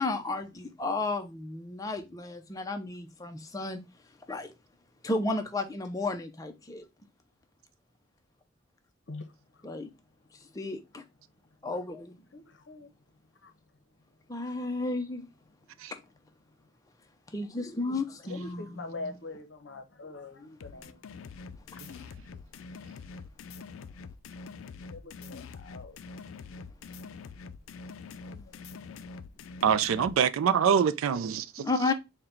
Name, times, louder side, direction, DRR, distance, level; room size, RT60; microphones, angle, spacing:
voice 1, 0.0-3.8 4.3-4.5 5.0-6.9 9.6-9.9 10.5-11.0 11.6-12.2 14.3-15.3 15.9-16.0 17.3-19.1 31.6-31.9, left 3 dB, 15° left, 0.5 m, -33 dB
voice 2, 9.1-9.7 11.3-11.7 12.3-13.6 14.5-14.7 16.4-16.6 18.2-23.7 24.9-26.3 26.6-27.1 27.4-27.6 27.9-29.3 30.1-30.3, left 2 dB, 60° left, 0.7 m, -47 dB
sound 1, 20.6-30.2, left 4 dB, 85° left, 0.4 m, -45 dB
voice 3, 29.6-31.7, right 7 dB, 85° right, 0.4 m, -25 dB
3.9 x 2.2 x 4.3 m
head